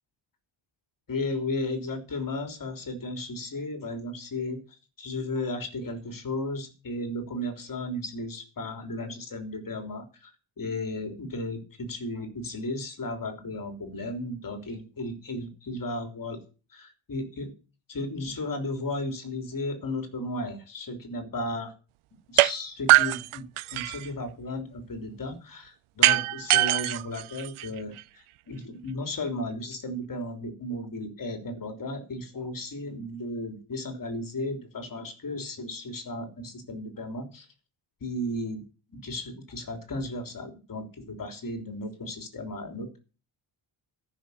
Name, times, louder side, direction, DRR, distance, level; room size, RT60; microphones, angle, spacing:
voice 1, 1.1-4.6 5.0-10.3 10.6-16.4 16.7-17.5 17.9-21.7 22.3-23.4 23.7-37.5 38.0-38.6 38.9-43.0, left 1 dB, 45° left, 5 dB, 3.5 m, -34 dB
sound 1, 22.4-22.5 22.9-24.1 26.0-28.0, right 17 dB, 85° right, 0.6 m, -22 dB
14.0 x 6.6 x 8.2 m, 0.34 s
wide cardioid pair, 135°, 48 cm